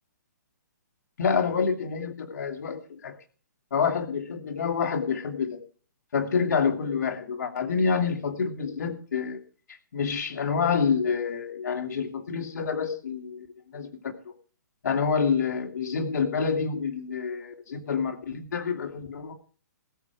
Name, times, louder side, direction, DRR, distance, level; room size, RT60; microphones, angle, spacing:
voice 1, 1.2-3.2 3.7-5.6 6.1-9.4 9.9-13.5 13.7-13.9 14.3-14.4 14.8-19.3, left 6 dB, 65° left, 4 dB, 2.4 m, -27 dB
20.0 x 8.2 x 4.7 m, 0.41 s
hypercardioid pair, 160°, 10 cm